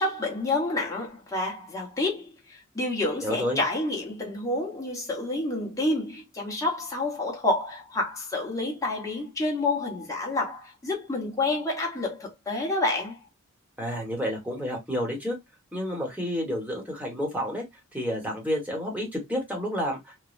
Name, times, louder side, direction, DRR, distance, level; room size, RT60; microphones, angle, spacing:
voice 1, 0.0-13.2, left 2 dB, 15° left, 1.0 m, -29 dB
voice 2, 3.2-3.6 13.8-15.4 15.7-17.6 17.9-20.2, equal, 5° right, 1.1 m, -30 dB
3.2 x 2.2 x 2.4 m
head